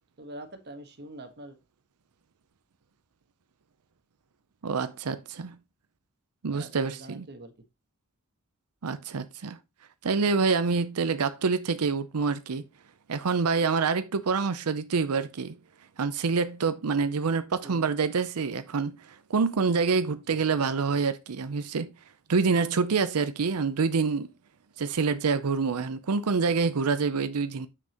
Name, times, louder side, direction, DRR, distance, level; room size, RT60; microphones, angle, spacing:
voice 1, 0.2-1.6 6.5-7.5 17.6-17.8 20.1-20.7, right 1 dB, 50° right, 1.4 m, -45 dB
voice 2, 4.6-5.6 6.4-7.3 8.8-9.6 10.0-12.6 13.1-15.6 16.0-21.9 22.3-24.3 24.8-27.7, right 5 dB, 85° right, 0.6 m, -26 dB
7.8 x 6.1 x 2.9 m
head